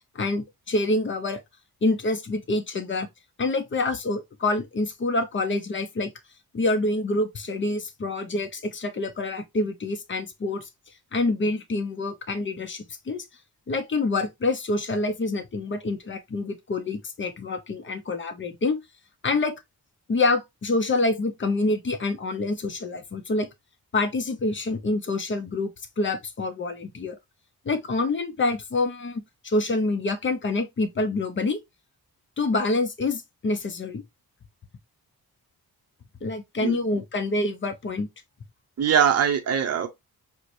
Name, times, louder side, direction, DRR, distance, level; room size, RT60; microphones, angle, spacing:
voice 1, 0.1-1.4 1.8-3.1 3.4-6.1 6.5-10.7 11.1-13.2 13.7-18.8 19.2-19.6 20.1-23.5 23.9-25.7 26.0-27.2 27.7-31.6 32.4-34.0 36.2-38.1, left 2 dB, 30° left, 0.6 m, -26 dB
voice 2, 38.8-39.9, right 8 dB, 40° right, 0.6 m, -22 dB
4.5 x 2.1 x 2.6 m
wide cardioid pair, 130°, 38 cm